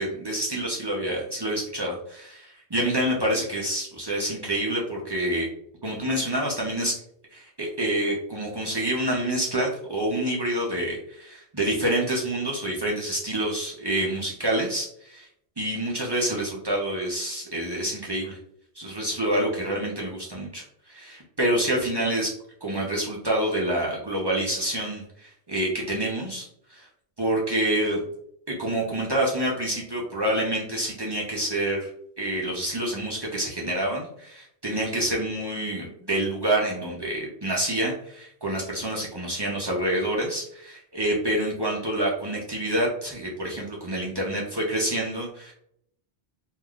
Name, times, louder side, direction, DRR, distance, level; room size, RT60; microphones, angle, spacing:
voice 1, 0.0-5.5 5.8-7.0 7.3-15.3 15.6-18.4 18.8-22.3 22.6-26.9 27.2-28.0 28.5-31.9 32.2-45.5, right 1 dB, 40° right, -3 dB, 0.4 m, -27 dB
3.4 x 2.3 x 2.3 m, 0.70 s
omnidirectional pair, 1.2 m